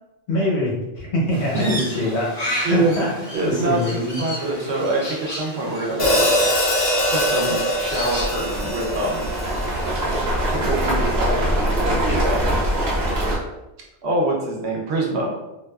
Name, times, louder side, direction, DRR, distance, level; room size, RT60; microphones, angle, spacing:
voice 1, 0.3-4.2, left 1 dB, 80° left, -5 dB, 1.2 m, -24 dB
Crow, 1.3-8.6, equal, 40° left, 1.1 m, -33 dB
voice 2, 2.6-2.9 3.3-6.5 7.1-9.3 10.4-12.6 14.0-15.3, right 2 dB, 75° right, -1 dB, 0.9 m, -25 dB
Hi-hat, 6.0-10.3, equal, 60° left, 0.9 m, -22 dB
sound 1, 6.6-6.7 7.3-13.4, right 1 dB, 50° right, 0.6 m, -23 dB
2.5 x 2.2 x 2.2 m, 0.98 s
omnidirectional pair, 1.1 m